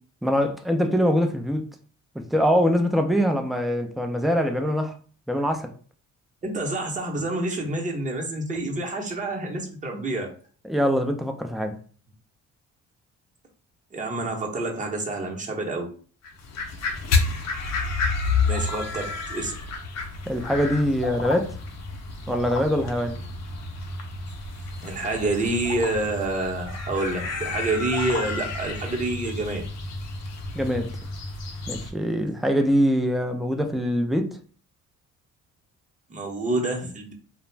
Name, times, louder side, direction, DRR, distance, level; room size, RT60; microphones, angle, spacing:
voice 1, 0.2-1.6 2.2-4.9 5.3-5.7 9.9-10.1 10.6-11.8 20.2-21.6 22.3-23.2 30.5-30.9 31.7-34.4, equal, ahead, 0.3 m, -23 dB
voice 2, 6.4-10.3 13.9-15.9 18.4-19.6 24.8-29.6 36.1-37.1, right 2 dB, 25° right, 0.8 m, -28 dB
sound 1, 16.2-31.9, left 4 dB, 60° left, 0.6 m, -30 dB
2.4 x 2.1 x 3.2 m
cardioid pair, 90°, 30 cm